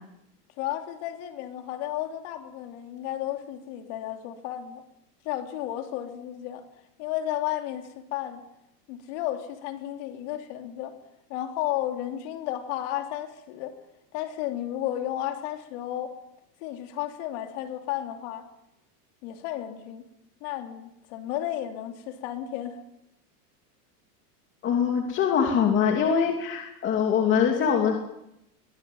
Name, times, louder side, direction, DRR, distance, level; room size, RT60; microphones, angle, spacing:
voice 1, 0.6-4.8 5.2-6.6 7.0-8.4 8.9-10.9 11.3-13.8 14.1-16.2 16.6-18.4 19.2-20.0 20.4-22.8, left 12 dB, 45° left, 5 dB, 3.1 m, -33 dB
voice 2, 24.6-27.9, left 7 dB, 25° left, 2 dB, 2.8 m, -23 dB
22.5 x 20.0 x 9.4 m, 0.83 s
supercardioid pair, 165°, 48 cm